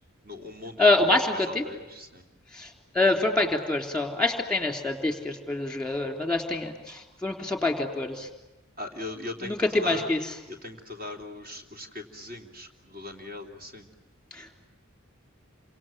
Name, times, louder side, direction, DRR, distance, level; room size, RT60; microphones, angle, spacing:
voice 1, 0.2-2.2 6.5-6.6 8.8-10.1 10.5-13.9, left 2 dB, 45° right, 3 dB, 3.3 m, -39 dB
voice 2, 0.8-1.6 2.6-2.7 3.0-8.3 9.4-10.2, left 2 dB, 5° left, 4 dB, 3.5 m, -25 dB
29.0 x 26.0 x 7.5 m, 1.0 s
head